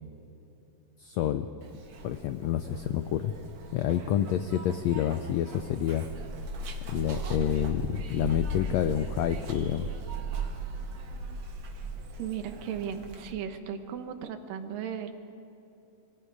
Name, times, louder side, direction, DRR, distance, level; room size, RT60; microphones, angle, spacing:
voice 1, 1.0-1.5 2.0-3.3 3.7-6.0 6.9-9.9, left 10 dB, 85° left, 10 dB, 1.5 m, -28 dB
Zipper (clothing), 1.6-13.3, right 2 dB, 55° right, 2.7 m, -38 dB
voice 2, 12.2-15.1, right 8 dB, 85° right, 7 dB, 2.9 m, -36 dB
27.0 x 23.5 x 4.9 m, 3.0 s
omnidirectional pair, 3.9 m